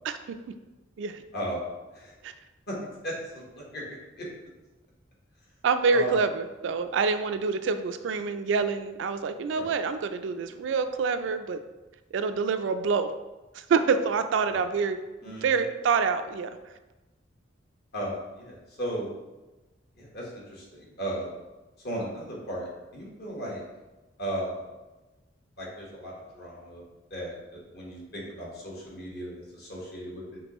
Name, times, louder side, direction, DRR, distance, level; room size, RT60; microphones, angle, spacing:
voice 1, 1.3-1.7 1.9-2.1 2.7-2.8 3.0-3.8 4.2-4.3 5.9-6.2 9.5-9.7 14.5-14.6 15.2-15.6 17.9-19.1 19.9-21.4 21.8-23.6 24.2-24.7 25.6-26.8 27.1-30.4, equal, 55° left, -4 dB, 1.3 m, -36 dB
voice 2, 5.6-11.6 12.1-13.1 13.5-16.6, right 5 dB, 70° right, 9 dB, 0.3 m, -26 dB
5.3 x 3.1 x 3.0 m, 1.1 s
head